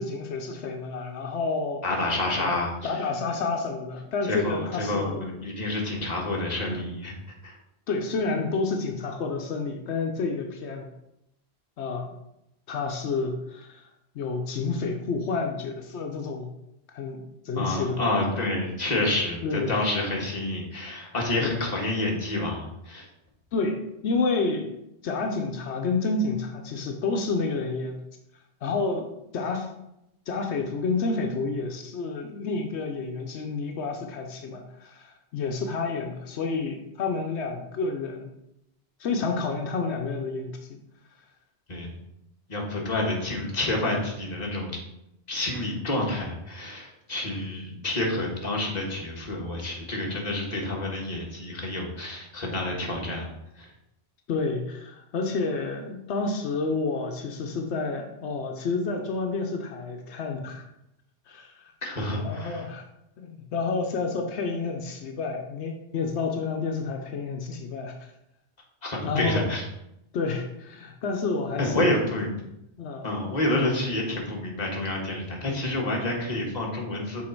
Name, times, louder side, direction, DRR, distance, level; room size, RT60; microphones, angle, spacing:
voice 1, 0.0-1.8 2.3-2.5 2.8-5.3 7.9-10.9 11.8-12.1 12.7-13.8 14.1-16.5 16.9-18.0 19.4-19.8 21.4-21.5 23.5-24.7 25.0-28.0 28.6-29.1 29.3-29.7 30.3-38.3 39.0-40.8 47.7-47.8 54.3-60.6 61.3-61.6 62.0-62.8 63.2-67.9 69.0-69.5 70.1-72.0 72.8-73.0, left 4 dB, 85° left, 3 dB, 1.0 m, -29 dB
voice 2, 1.8-2.9 4.2-7.1 7.4-7.6 17.6-23.1 41.7-41.9 42.5-44.8 45.3-53.3 53.6-53.7 61.8-62.6 68.8-69.6 71.6-72.4 73.0-77.2, left 1 dB, 40° left, -1 dB, 1.5 m, -28 dB
6.3 x 4.0 x 4.4 m, 0.83 s
omnidirectional pair, 1.1 m